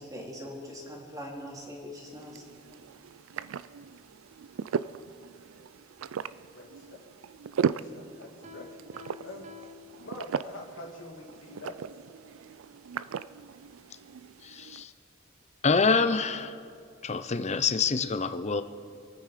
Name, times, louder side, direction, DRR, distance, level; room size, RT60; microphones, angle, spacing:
voice 1, 0.0-2.4, equal, 20° right, -2 dB, 3.0 m, -42 dB
sound 1, 1.9-14.8, right 6 dB, 75° right, 0.4 m, -37 dB
voice 2, 6.5-7.0 7.6-8.8 9.2-9.5 10.0-11.8, left 2 dB, 65° left, 0 dB, 2.5 m, -45 dB
Piano, 8.4-10.7, left 5 dB, 35° right, 1.0 m, -50 dB
voice 3, 14.4-14.9 15.6-16.6 17.0-18.6, left 4 dB, 35° left, 11 dB, 0.6 m, -26 dB
27.0 x 9.4 x 5.0 m, 2.3 s
head